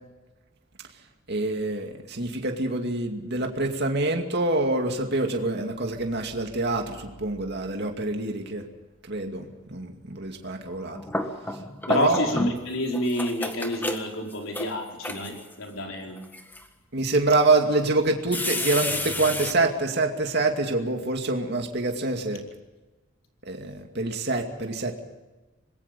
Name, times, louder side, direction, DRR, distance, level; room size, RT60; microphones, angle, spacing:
voice 1, 1.3-8.7 9.1-11.0 11.9-12.3 16.9-22.4 23.5-25.0, right 2 dB, 55° right, 3 dB, 2.4 m, -26 dB
sound 1, 10.7-12.7 12.9-15.5 16.2-16.6 17.3-17.4 18.3-19.5, left 1 dB, 10° left, 1.6 m, -31 dB
voice 2, 11.9-16.2, left 1 dB, 80° left, 1 dB, 5.0 m, -29 dB
26.5 x 21.0 x 5.4 m, 1.1 s
head